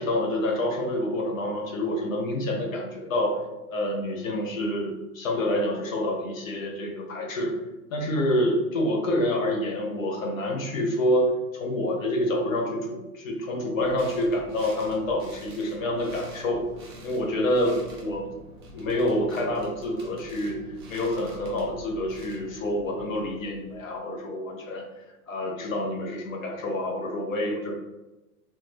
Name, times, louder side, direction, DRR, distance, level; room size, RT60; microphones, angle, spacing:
voice 1, 0.0-3.4 3.7-7.5 7.9-16.7 17.0-18.3 18.7-20.6 20.9-24.9 25.3-27.7, left 1 dB, 60° left, 2 dB, 0.8 m, -27 dB
sound 1, 13.7-23.9, right 1 dB, 20° right, 0.3 m, -46 dB
3.5 x 2.1 x 3.1 m, 1.0 s
figure-of-eight pair, 95°, 44 cm